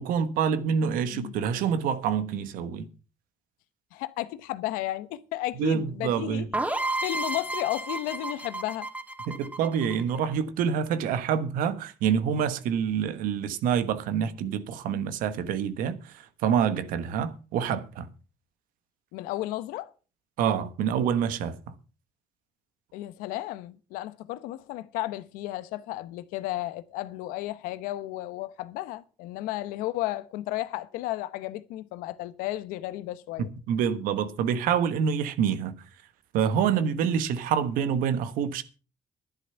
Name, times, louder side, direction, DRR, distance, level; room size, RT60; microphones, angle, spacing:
voice 1, 0.0-2.9 5.6-6.5 9.3-18.1 20.4-21.7 33.4-35.8 36.3-38.6, right 7 dB, 85° right, 1.4 m, -27 dB
voice 2, 1.0-1.5 3.9-6.5 7.0-8.9 19.1-19.9 22.9-33.5, left 15 dB, 90° left, 0.9 m, -33 dB
sound 1, 6.5-10.3, right 2 dB, 10° right, 2.8 m, -32 dB
11.5 x 11.0 x 5.7 m
supercardioid pair, 55°, 14 cm